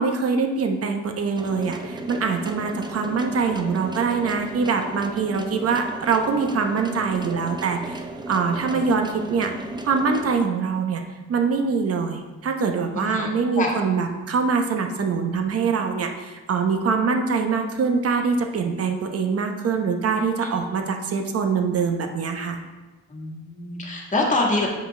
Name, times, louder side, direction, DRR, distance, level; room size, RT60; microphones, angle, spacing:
voice 1, 0.0-9.5 9.8-11.0 11.3-22.6, right 5 dB, 50° right, 5 dB, 0.9 m, -24 dB
sound 1, 1.4-10.4, right 2 dB, 15° right, 0.5 m, -35 dB
voice 2, 8.5-8.8 12.9-13.3 13.6-13.7 23.1-24.7, left 2 dB, 25° left, -1 dB, 1.7 m, -25 dB
7.3 x 5.1 x 3.3 m, 1.2 s
cardioid pair, 90°, 30 cm